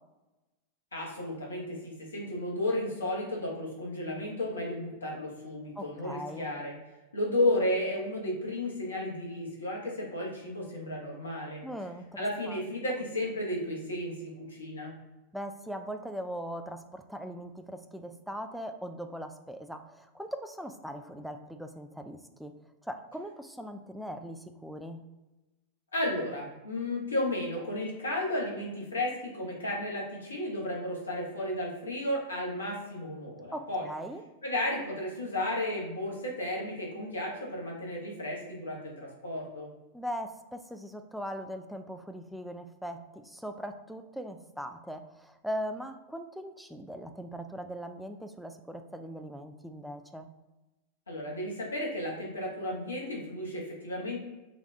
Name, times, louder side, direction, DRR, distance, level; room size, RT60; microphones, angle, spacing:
voice 1, 0.9-6.7 7.1-11.6 12.2-14.9 25.9-33.8 34.4-39.7 51.1-54.2, left 1 dB, 75° left, -3 dB, 1.0 m, -33 dB
voice 2, 5.8-6.5 11.6-12.6 15.3-22.6 22.8-25.0 33.5-34.2 39.9-50.3, equal, ahead, 6 dB, 0.3 m, -40 dB
3.9 x 2.3 x 3.4 m, 1.1 s
figure-of-eight pair, 90°, 0 cm